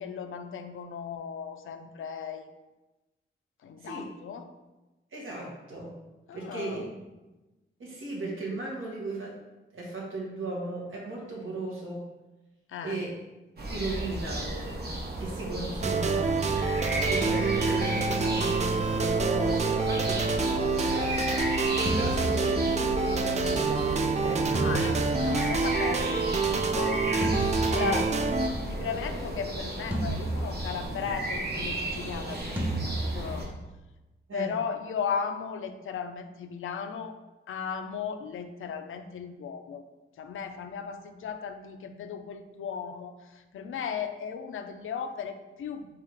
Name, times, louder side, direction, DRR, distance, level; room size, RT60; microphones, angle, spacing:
voice 1, 0.0-2.5 3.6-4.5 6.3-6.9 12.7-13.0 24.5-27.1 27.7-28.1 28.7-33.5 34.3-37.2 37.5-39.8 40.2-45.9, left 7 dB, 85° left, 8 dB, 0.4 m, -36 dB
voice 2, 3.8-4.1 5.1-5.9 6.3-7.0 7.8-9.4 9.7-12.0 12.8-13.2 13.6-14.5 15.2-16.3 17.1-21.1 21.9-24.8 27.8-28.0 34.3-34.5, right 2 dB, 85° right, -3 dB, 1.3 m, -36 dB
sound 1, 13.6-33.4, right 1 dB, 50° right, 0.9 m, -34 dB
sound 2, 15.8-28.5, right 4 dB, 35° right, 0.4 m, -27 dB
sound 3, 21.9-23.0 24.5-26.1 27.2-28.4 29.9-31.1 32.6-33.7, right 1 dB, 10° right, 0.7 m, -33 dB
3.6 x 3.3 x 4.6 m, 1.1 s
wide cardioid pair, 125°, 20 cm